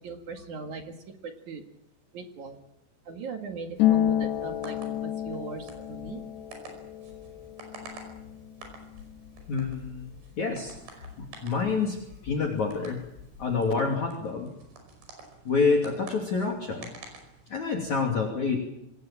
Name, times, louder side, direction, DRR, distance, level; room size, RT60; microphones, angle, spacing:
voice 1, 0.0-1.6 2.1-2.6 3.1-6.2, right 4 dB, 55° right, 4 dB, 2.8 m, -39 dB
Harp, 3.8-11.3 11.5-12.6 12.9-13.5, left 12 dB, 75° left, 3.5 m, -31 dB
sound 1, 4.3-17.9, right 3 dB, 70° right, 7.5 m, -50 dB
voice 2, 9.5-12.0 12.2-13.0 13.4-14.5 15.5-16.9 17.5-18.6, left 4 dB, 45° left, 0 dB, 3.7 m, -28 dB
26.0 x 19.5 x 7.5 m, 0.84 s
omnidirectional pair, 5.1 m